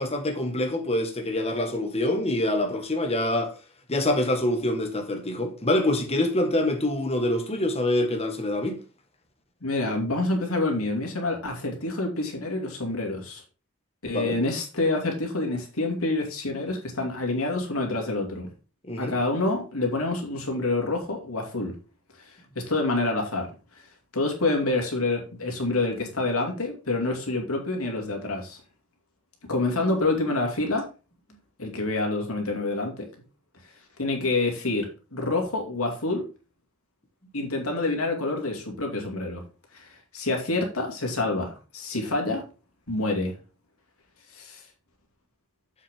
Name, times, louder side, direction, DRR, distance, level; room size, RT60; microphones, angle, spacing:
voice 1, 0.0-3.5 3.9-8.8 14.1-14.4 18.8-19.2, left 1 dB, 30° left, 1.6 m, -25 dB
voice 2, 9.6-13.4 14.0-18.5 19.0-21.8 22.2-23.9 24.1-28.6 29.5-30.9 31.6-33.1 34.0-36.2 37.3-39.4 39.7-42.4 42.9-43.3 44.3-44.7, left 2 dB, 85° left, 2.6 m, -27 dB
7.5 x 6.6 x 3.7 m
head